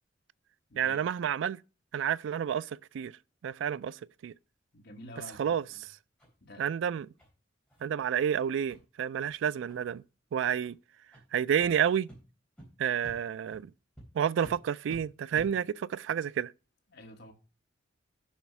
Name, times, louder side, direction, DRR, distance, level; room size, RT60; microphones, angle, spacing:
voice 1, 0.8-1.6 1.9-3.1 3.4-4.3 5.4-5.6 6.6-7.1 7.8-10.0 10.3-10.8 11.3-12.1 12.8-13.7 14.1-16.5, right 8 dB, 85° right, 0.3 m, -30 dB
voice 2, 4.7-5.5 6.4-6.6 16.9-17.3, left 1 dB, 60° left, 1.4 m, -48 dB
sound 1, 5.2-5.3 5.7-5.8 6.2-6.3 6.7-6.8 7.2-7.3 7.7-7.8 8.2-8.3 8.7-8.8 9.2-9.3 9.7-10.0 10.6-10.7 11.1-11.2 11.6-11.7 12.1-12.2 12.6-12.7 13.0-13.2 13.5-13.6 14.0-14.1 14.4-14.5 14.9-15.0 15.3-15.5, right 1 dB, 5° left, 3.4 m, -50 dB
7.3 x 5.4 x 5.9 m
head